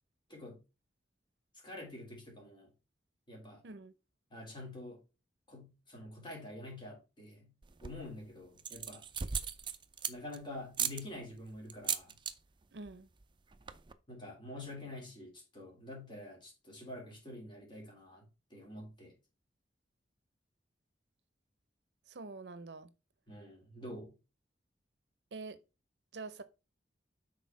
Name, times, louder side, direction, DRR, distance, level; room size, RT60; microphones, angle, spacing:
voice 1, 1.5-2.7 3.3-3.6 4.3-5.0 5.5-7.5 7.8-9.0 10.1-12.2 14.1-18.2 18.5-19.1 23.3-24.1, left 1 dB, 30° left, 3.3 m, -47 dB
sound 1, 7.6-8.1 8.6-10.4 10.7-11.0 11.7-12.3 12.6-12.9 13.2-13.3 13.5-13.9, right 7 dB, 30° right, 0.5 m, -37 dB
voice 2, 12.7-13.1 22.1-22.9 25.3-25.6 26.1-26.4, right 3 dB, 70° right, 0.7 m, -46 dB
6.4 x 4.4 x 5.7 m
head